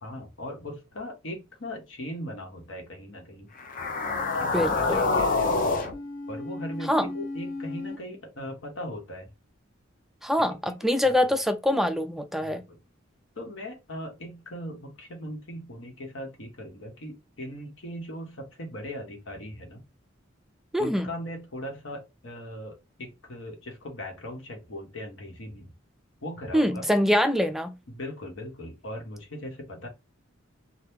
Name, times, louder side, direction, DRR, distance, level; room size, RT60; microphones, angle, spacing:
voice 1, 0.0-3.5 4.3-5.8 6.3-9.3 10.5-10.8 12.5-12.8 13.4-19.8 20.8-25.7 26.2-26.9 27.9-29.9, equal, 70° left, 1.2 m, -39 dB
sound 1, 3.6-8.0, left 3 dB, 45° left, 0.6 m, -28 dB
voice 2, 4.5-5.0 6.9-7.1 10.2-12.6 20.7-21.1 26.5-27.8, left 1 dB, ahead, 0.3 m, -24 dB
2.9 x 2.3 x 3.5 m
head